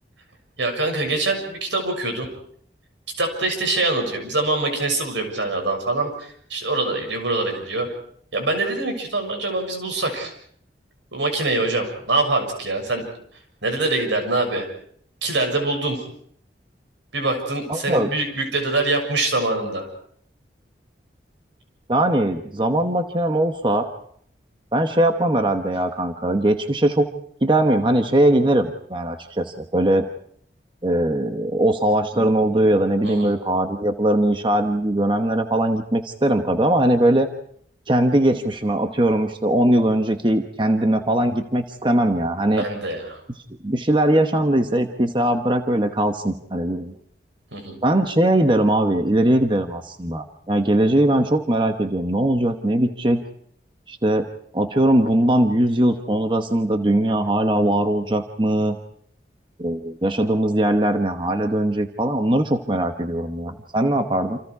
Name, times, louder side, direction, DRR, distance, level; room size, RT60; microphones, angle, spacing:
voice 1, 0.6-2.3 3.2-7.9 8.3-10.3 11.1-13.0 13.6-14.7 15.2-16.0 17.1-19.9 33.0-33.3 42.6-43.2 47.5-47.8, right 2 dB, 90° right, 4 dB, 6.7 m, -24 dB
voice 2, 17.7-18.1 21.9-23.9 24.7-27.1 27.4-30.0 30.8-37.3 37.9-42.7 43.6-46.9 47.8-53.2 53.9-54.3 54.5-58.8 59.6-64.4, right 1 dB, 25° right, 6 dB, 1.1 m, -20 dB
28.5 x 28.0 x 4.8 m, 0.64 s
head